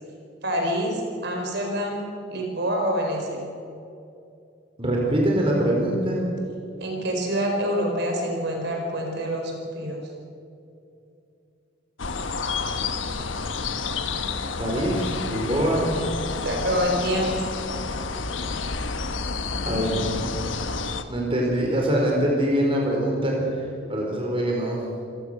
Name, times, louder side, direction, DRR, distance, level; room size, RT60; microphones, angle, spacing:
voice 1, 0.4-2.0 2.3-3.4 6.8-10.0 16.4-17.5, equal, 60° right, 1 dB, 4.9 m, -26 dB
voice 2, 4.8-6.2 14.6-15.8 19.6-20.1 21.1-24.8, right 1 dB, 30° right, -1 dB, 4.2 m, -24 dB
sound 1, 12.0-21.0, left 4 dB, 80° left, 1.3 m, -30 dB
27.0 x 16.5 x 6.7 m, 2.6 s
head